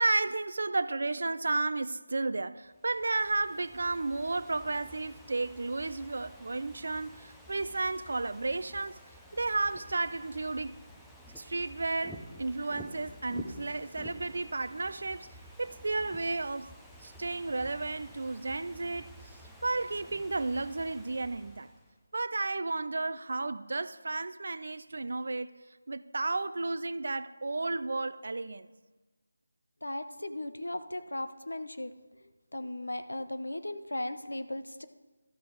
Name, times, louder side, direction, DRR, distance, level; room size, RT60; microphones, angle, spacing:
voice 1, 0.0-9.0 9.3-10.7 11.4-15.3 15.6-16.7 17.0-21.7 22.1-25.5 25.9-28.7, right 3 dB, 60° right, 0.4 m, -33 dB
Ocean / Fireworks, 2.7-22.0, equal, 5° left, 0.6 m, -51 dB
voice 2, 29.8-31.9 32.5-34.9, left 1 dB, 85° left, 0.7 m, -37 dB
12.5 x 5.2 x 4.6 m
figure-of-eight pair, 165°, 0 cm